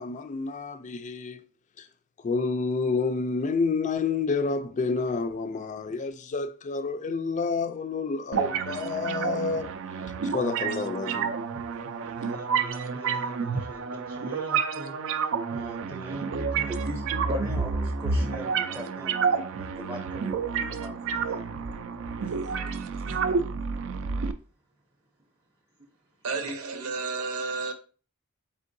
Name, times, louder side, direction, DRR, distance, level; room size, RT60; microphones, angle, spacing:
voice 1, 0.0-1.4 1.8-1.9 2.2-9.7 10.3-11.4 11.9-12.0, left 4 dB, 35° left, 0.4 m, -29 dB
sound 1, 8.3-24.3, right 5 dB, 65° right, 0.4 m, -29 dB
voice 2, 12.0-21.4 26.3-26.5, equal, 10° right, 0.6 m, -41 dB
voice 3, 26.2-27.7, right 4 dB, 90° right, 0.7 m, -32 dB
4.3 x 3.7 x 2.6 m
head